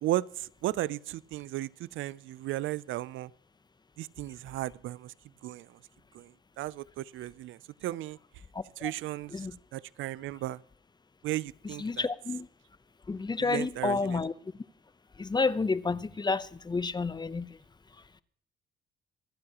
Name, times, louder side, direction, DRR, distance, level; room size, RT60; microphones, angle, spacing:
voice 1, 0.0-3.3 4.0-5.1 5.4-5.8 6.1-8.2 8.8-9.4 9.7-10.6 11.2-12.1 13.4-14.2, right 15 dB, 80° right, 0.5 m, -35 dB
voice 2, 8.5-8.9 9.3-9.6 11.6-12.5 13.1-14.3 15.2-17.6, left 4 dB, 20° left, 0.7 m, -30 dB
26.0 x 9.5 x 3.0 m
cardioid pair, 90°, 20 cm